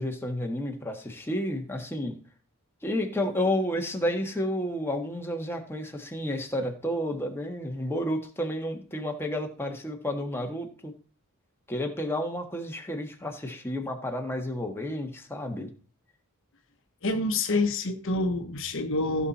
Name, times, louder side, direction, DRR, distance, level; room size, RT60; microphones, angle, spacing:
voice 1, 0.0-2.1 2.8-10.9 11.7-15.7, left 1 dB, 10° left, 1.5 m, -31 dB
voice 2, 17.0-19.3, left 2 dB, 65° left, 1.1 m, -27 dB
15.0 x 5.8 x 4.2 m
head